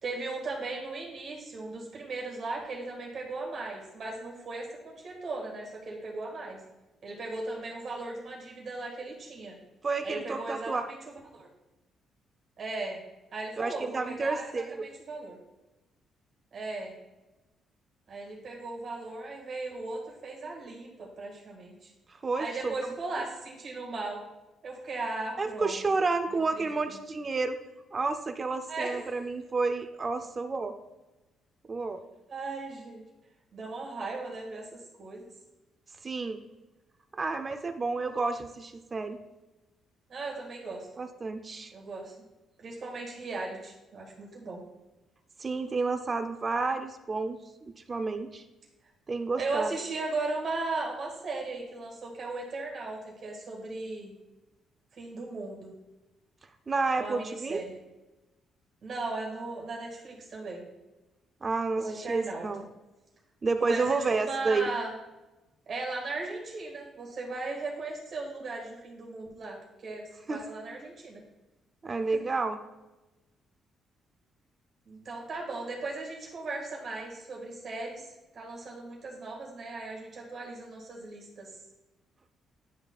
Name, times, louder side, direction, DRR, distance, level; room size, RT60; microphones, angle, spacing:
voice 1, 0.0-6.6 7.0-9.6 10.0-11.5 12.6-13.0 13.3-15.4 16.5-16.9 18.1-21.9 22.4-24.2 24.6-25.8 26.5-27.0 28.7-29.2 32.3-33.0 33.5-34.7 35.0-35.3 40.1-40.9 41.7-42.1 42.6-44.6 49.4-54.1 54.9-55.7 57.0-57.7 58.8-60.6 61.8-62.5 63.6-64.9 65.7-71.2 72.1-72.2 74.9-78.1 78.3-81.5, right 3 dB, 55° right, -1 dB, 1.7 m, -37 dB
voice 2, 9.8-10.8 13.6-14.9 22.2-22.7 25.4-27.6 27.9-30.7 31.7-32.0 36.0-36.4 37.2-39.2 41.0-41.7 45.4-48.4 49.1-49.7 56.7-57.6 61.4-62.6 63.4-64.7 70.3-70.4 71.8-72.6, right 3 dB, 35° right, 8 dB, 0.5 m, -30 dB
10.5 x 4.1 x 2.4 m, 1.0 s
cardioid pair, 90°, 0 cm